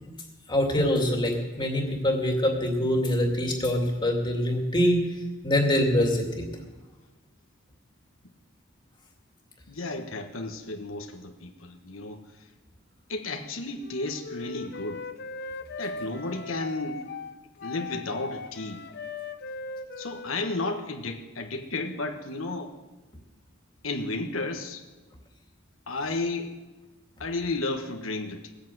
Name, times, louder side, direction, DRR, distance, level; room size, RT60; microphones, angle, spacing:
voice 1, 0.5-5.0 5.4-6.5, left 1 dB, 25° left, 1 dB, 2.3 m, -24 dB
voice 2, 9.7-12.5 13.1-15.0 15.8-17.0 17.6-18.8 20.0-22.7 23.8-24.8 25.9-26.5 27.2-28.5, left 2 dB, 90° left, 3 dB, 1.4 m, -33 dB
Wind instrument woodwind instrument, 13.8-21.2, left 4 dB, 55° left, 0.8 m, -39 dB
19.0 x 8.4 x 7.9 m, 1.2 s
head